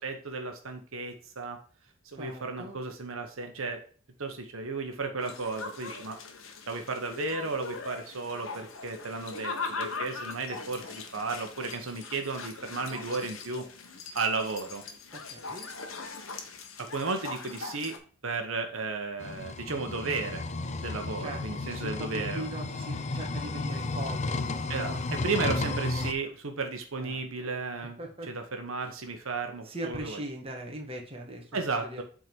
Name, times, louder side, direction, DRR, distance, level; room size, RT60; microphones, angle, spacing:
voice 1, 0.0-1.6 2.0-3.8 4.2-6.2 6.7-13.7 14.1-14.8 16.8-17.9 18.2-20.4 20.8-22.4 24.7-28.0 28.3-30.2 31.5-32.0, right 3 dB, 75° right, 5 dB, 1.1 m, -34 dB
voice 2, 2.2-2.8 15.1-15.7 21.2-24.3 24.6-25.0 25.3-25.8 26.2-26.3 27.0-27.5 28.0-28.3 29.6-32.0, right 1 dB, 30° right, 1 dB, 1.5 m, -41 dB
sound 1, 5.2-18.0, left 4 dB, 75° left, 1.2 m, -40 dB
sound 2, 19.2-26.1, left 3 dB, 35° left, 0.6 m, -33 dB
8.1 x 3.8 x 4.6 m, 0.42 s
head